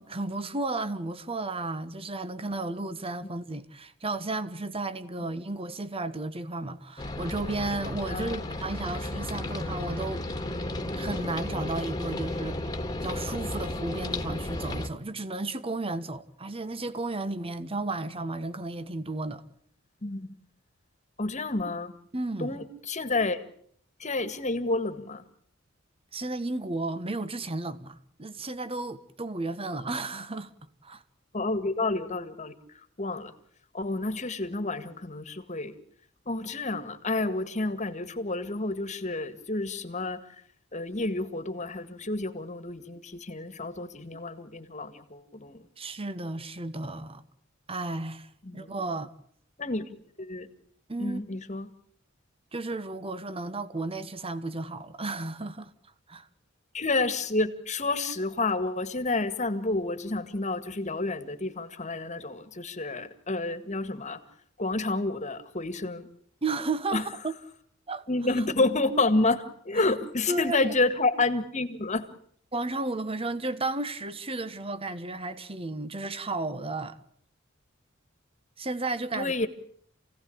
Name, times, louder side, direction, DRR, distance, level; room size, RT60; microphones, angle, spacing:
voice 1, 0.0-10.3 11.0-12.6 13.0-19.4 22.1-22.6 26.1-30.5 30.8-31.0 45.8-47.2 47.7-49.1 50.9-51.2 52.5-55.7 56.1-56.3 66.4-67.3 67.9-68.1 68.4-68.5 69.8-69.9 70.3-70.7 72.5-77.0 78.6-79.3, right 2 dB, 30° right, 1.2 m, -33 dB
sound 1, 7.0-14.9, left 1 dB, 20° left, 2.0 m, -33 dB
voice 2, 8.1-8.4 20.0-20.4 21.2-21.9 22.4-23.4 24.0-25.2 31.3-32.5 33.0-33.3 33.7-35.7 36.3-40.2 40.7-45.6 48.4-48.7 49.6-49.9 50.2-50.5 51.0-51.7 56.7-64.2 64.6-66.0 66.9-67.0 68.1-72.1 79.1-79.5, left 2 dB, 35° left, 1.8 m, -29 dB
28.0 x 17.0 x 8.7 m
head